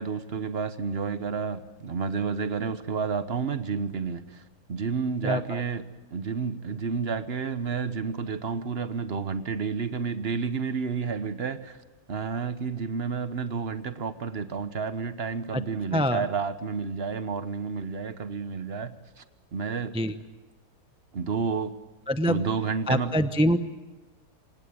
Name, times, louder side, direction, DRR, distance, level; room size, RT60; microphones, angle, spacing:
voice 1, 0.0-4.4 4.7-5.8 6.1-11.8 12.1-19.2 19.5-19.9 21.1-21.7 22.3-23.1, right 5 dB, 45° right, 1.2 m, -30 dB
voice 2, 5.2-5.6 15.5-15.6 15.9-16.2 19.9-20.1 22.1-22.4 22.9-23.6, equal, 5° right, 0.5 m, -25 dB
26.5 x 18.0 x 8.9 m
omnidirectional pair, 1.7 m